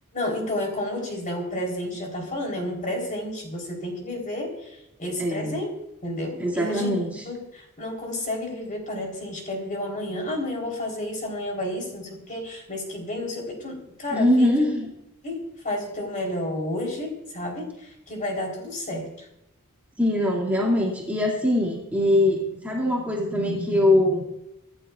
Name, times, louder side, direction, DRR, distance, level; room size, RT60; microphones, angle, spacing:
voice 1, 0.1-5.7 6.0-6.9 7.3-14.6 15.2-19.3, left 1 dB, 35° left, 0 dB, 3.6 m, -31 dB
voice 2, 5.2-5.6 6.4-7.1 14.1-14.9 20.0-24.2, left 1 dB, 10° right, -4 dB, 2.2 m, -22 dB
25.5 x 11.0 x 2.4 m, 0.87 s
head